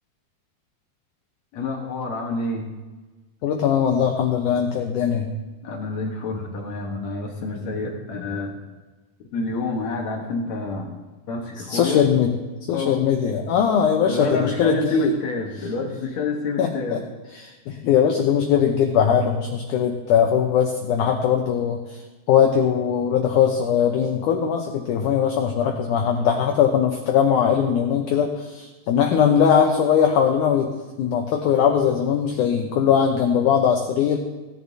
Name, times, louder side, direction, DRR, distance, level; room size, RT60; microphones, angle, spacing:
voice 1, 1.5-2.7 5.6-8.6 9.3-10.9 11.3-12.0 12.7-13.0 14.0-17.0, left 3 dB, 65° left, 1 dB, 1.8 m, -28 dB
voice 2, 3.4-5.3 11.7-12.3 12.7-15.1 16.6-17.0 17.4-22.0 22.3-30.7 31.0-34.2, left 8 dB, 85° left, 3 dB, 1.8 m, -20 dB
17.5 x 10.0 x 2.7 m, 1.2 s
omnidirectional pair, 4.6 m